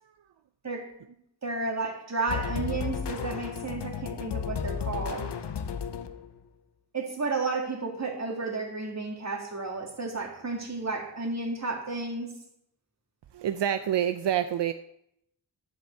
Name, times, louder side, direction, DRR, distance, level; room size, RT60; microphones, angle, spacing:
voice 1, 0.6-0.9 1.4-5.3 6.9-12.3, right 3 dB, 40° right, 1 dB, 2.2 m, -32 dB
sound 1, 2.3-6.4, left 7 dB, 75° left, 0.9 m, -33 dB
voice 2, 13.3-14.7, right 10 dB, 75° right, 9 dB, 0.6 m, -27 dB
11.0 x 5.5 x 8.1 m, 0.75 s
wide cardioid pair, 130°, 42 cm